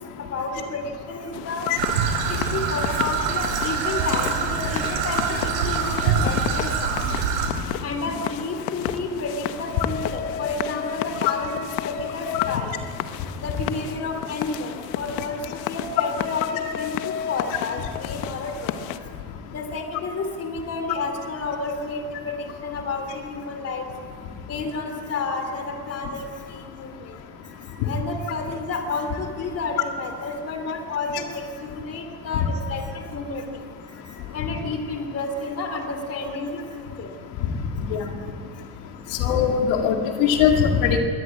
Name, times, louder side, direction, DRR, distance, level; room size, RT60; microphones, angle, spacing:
voice 1, 0.3-1.7 2.3-7.0 7.8-12.7 13.4-18.8 19.5-23.8 24.5-27.1 27.6-33.4 34.0-37.1 39.2-39.3, left 3 dB, 30° left, 6 dB, 3.2 m, -31 dB
sound 1, 1.3-19.0, left 10 dB, 90° left, 1.4 m, -32 dB
Traffic noise roadway noise / Trickle dribble, 1.8-7.5, right 6 dB, 85° right, 4.5 m, -25 dB
voice 2, 39.2-41.0, left 7 dB, 75° left, 3 dB, 2.3 m, -20 dB
23.0 x 18.5 x 8.5 m, 2.1 s
cardioid pair, 150°, 46 cm